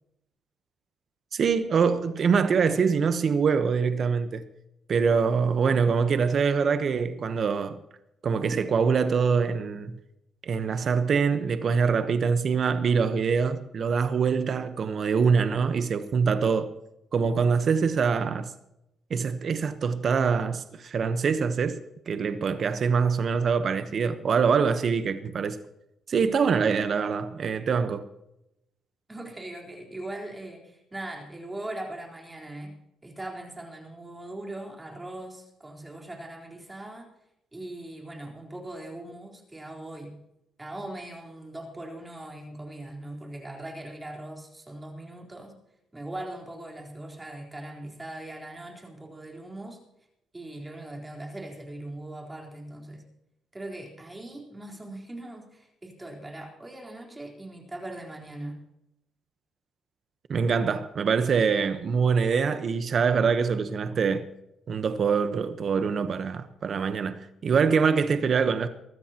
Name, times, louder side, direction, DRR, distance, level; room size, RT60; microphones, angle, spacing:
voice 1, 1.3-4.4 4.9-7.8 8.2-9.9 10.4-16.7 17.1-18.5 19.1-21.8 22.1-25.6 26.1-28.0 60.3-64.3 64.7-68.7, right 5 dB, 50° right, 1.0 m, -24 dB
voice 2, 29.1-32.7 33.0-37.1 37.5-40.1 40.6-45.6 45.9-49.8 50.3-53.0 53.5-58.6, right 1 dB, 15° right, 3.9 m, -40 dB
22.5 x 13.0 x 2.9 m
cardioid pair, 90°, 0 cm